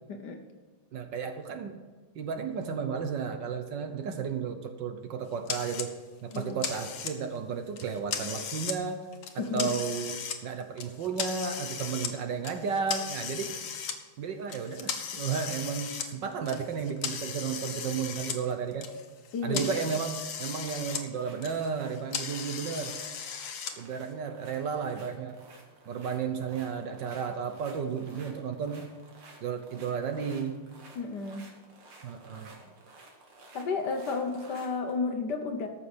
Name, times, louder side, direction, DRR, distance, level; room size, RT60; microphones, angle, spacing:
voice 1, 0.1-0.4 6.3-6.6 9.4-9.8 19.3-19.7 30.9-31.5 33.5-35.7, left 4 dB, 60° left, 6 dB, 1.4 m, -32 dB
voice 2, 0.9-1.8 2.1-5.9 6.2-9.0 9.3-13.5 14.2-18.9 19.4-23.0 23.8-25.4 25.9-28.9 29.4-30.6 32.0-32.6, right 6 dB, 65° right, 7 dB, 1.4 m, -33 dB
sound 1, 5.5-5.9 6.3-7.4 7.8-8.8 9.1-10.4 10.8-12.1 12.4-13.9 14.5-18.4 18.7-21.0 21.3-23.7, left 7 dB, 80° left, 1.9 m, -36 dB
sound 2, 21.2-35.0, right 2 dB, 85° right, 2.8 m, -53 dB
13.5 x 6.2 x 6.2 m, 1.4 s
omnidirectional pair, 2.3 m